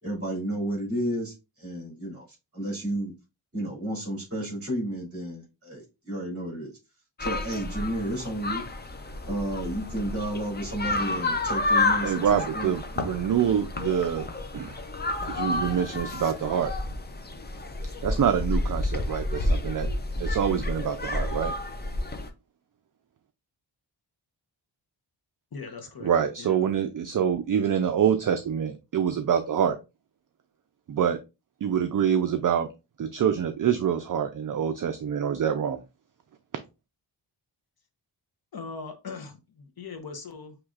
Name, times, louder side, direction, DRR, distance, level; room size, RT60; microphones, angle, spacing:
voice 1, 0.0-2.3 2.5-3.1 3.5-6.7 7.2-8.6 9.3-12.7, right 1 dB, 30° right, 2.7 m, -32 dB
sound 1, 7.2-22.3, left 2 dB, 25° left, 0.5 m, -30 dB
voice 2, 12.0-14.3 14.5-14.8 15.3-16.7 18.0-19.9 20.2-21.5 26.0-29.8 30.9-31.2 31.6-32.7 33.0-35.8, right 8 dB, 50° right, 0.4 m, -26 dB
voice 3, 25.5-26.1 26.4-26.6 38.5-40.6, left 4 dB, 55° left, 0.8 m, -40 dB
6.1 x 3.1 x 2.4 m
wide cardioid pair, 170°, 45 cm